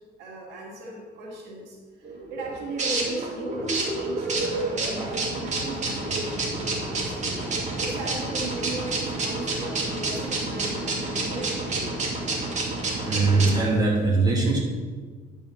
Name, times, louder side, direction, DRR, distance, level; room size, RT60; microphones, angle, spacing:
voice 1, 0.2-11.9, right 2 dB, 80° right, -3 dB, 2.5 m, -37 dB
sound 1, 2.0-13.6, right 2 dB, 45° right, 2.7 m, -29 dB
voice 2, 13.1-14.6, right 3 dB, 20° right, -4 dB, 3.0 m, -21 dB
11.0 x 5.4 x 5.9 m, 1.5 s
cardioid pair, 110°, 17 cm